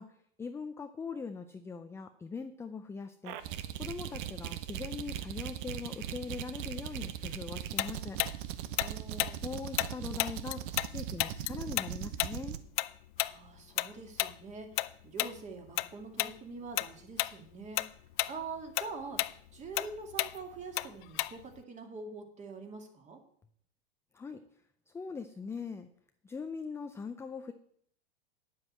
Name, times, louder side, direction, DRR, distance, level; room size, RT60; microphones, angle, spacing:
voice 1, 0.0-3.4 3.8-8.2 9.4-10.6 10.9-12.6 24.1-24.4 24.9-25.9 26.2-27.5, left 5 dB, 10° left, 8 dB, 0.5 m, -41 dB
sound 1, 3.2-12.6, right 11 dB, 60° right, 1.0 m, -39 dB
Tick-tock, 7.8-10.9 11.2-15.9 16.2-16.4 16.8-17.3 17.6-21.6, left 19 dB, 55° left, 0.6 m, -33 dB
voice 2, 8.8-9.4 13.2-17.8 18.3-23.2, right 4 dB, 25° right, 4 dB, 2.3 m, -45 dB
9.5 x 7.7 x 7.4 m, 0.65 s
supercardioid pair, 125°, 30 cm